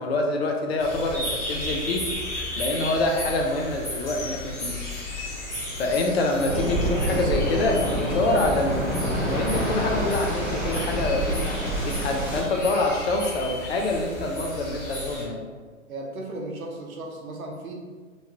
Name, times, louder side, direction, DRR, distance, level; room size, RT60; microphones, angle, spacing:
voice 1, 0.0-2.0 2.6-5.4 5.8-8.8 9.2-15.4, left 2 dB, 50° left, 2 dB, 0.5 m, -26 dB
sound 1, 0.8-15.2, left 1 dB, 30° left, 1.2 m, -34 dB
Waves surf, 6.5-12.4, equal, 5° right, 1.1 m, -27 dB
voice 2, 15.1-15.4 15.9-17.7, right 2 dB, 85° right, 0 dB, 0.7 m, -36 dB
3.0 x 2.2 x 2.8 m, 1.5 s
hypercardioid pair, 135°, 41 cm